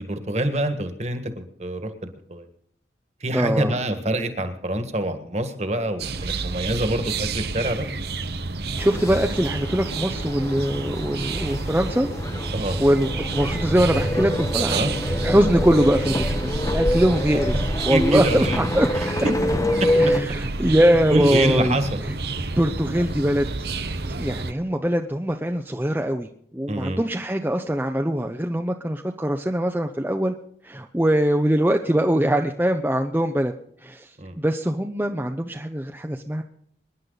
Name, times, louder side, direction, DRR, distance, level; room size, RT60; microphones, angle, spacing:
voice 1, 0.0-2.4 3.2-7.9 12.5-12.8 14.6-14.9 17.9-18.6 18.9-19.1 19.8-19.9 21.1-22.0 26.7-27.0 34.2-34.4, right 1 dB, 40° right, 8 dB, 1.7 m, -26 dB
voice 2, 3.3-3.8 8.8-12.1 12.8-14.8 15.2-19.2 19.9-21.8 22.4-23.5 24.1-30.3 30.6-33.5 33.8-34.1 34.4-36.4, equal, 10° right, 4 dB, 0.7 m, -22 dB
sound 1, 6.0-24.5, right 3 dB, 65° right, 1.0 m, -29 dB
sound 2, 8.8-20.2, left 1 dB, 20° left, 0.9 m, -27 dB
25.5 x 11.0 x 4.1 m, 0.67 s
head